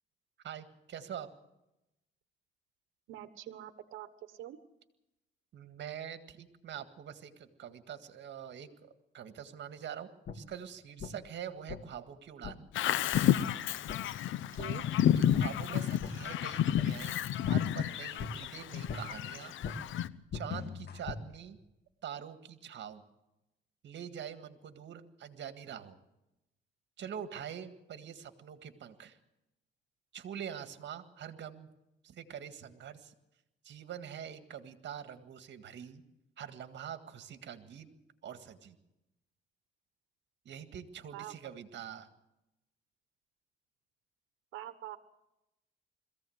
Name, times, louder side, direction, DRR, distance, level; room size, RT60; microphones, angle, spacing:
voice 1, 0.4-1.3 5.5-12.6 15.2-17.2 17.5-19.5 20.3-21.6 22.0-23.0 23.8-26.0 27.0-29.2 30.1-31.7 32.0-33.1 33.6-36.0 36.4-37.9 38.2-38.8 40.5-42.1, right 9 dB, 65° right, 9 dB, 1.9 m, -45 dB
voice 2, 3.1-4.6 14.6-14.8 41.1-41.3 44.5-45.0, right 13 dB, 90° right, 11 dB, 1.2 m, -45 dB
sound 1, 10.3-10.4 11.0-11.1 11.7-11.8 12.4-12.5 13.1-13.2 13.9-14.0 14.6-14.7 15.3-15.4 16.0-16.1 16.7-16.9 17.4-17.6 18.2-18.3 18.9-19.0 19.6-19.7 20.3-21.2, left 6 dB, 55° left, 1.9 m, -39 dB
Bird vocalization bird call bird song, 12.7-20.1, left 11 dB, 75° left, 0.8 m, -31 dB
22.0 x 15.5 x 8.0 m, 0.91 s
cardioid pair, 90°, 20 cm